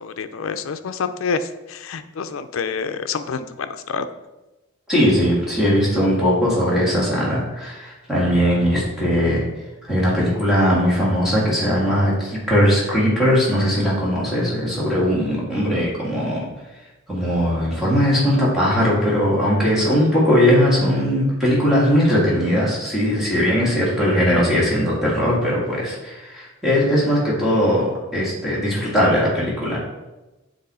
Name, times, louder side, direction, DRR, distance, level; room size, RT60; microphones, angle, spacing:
voice 1, 0.0-4.1, left 5 dB, 70° left, 10 dB, 0.4 m, -27 dB
voice 2, 4.9-9.4 9.9-16.5 17.1-29.8, equal, ahead, -7 dB, 2.0 m, -19 dB
7.8 x 3.1 x 4.2 m, 1.0 s
head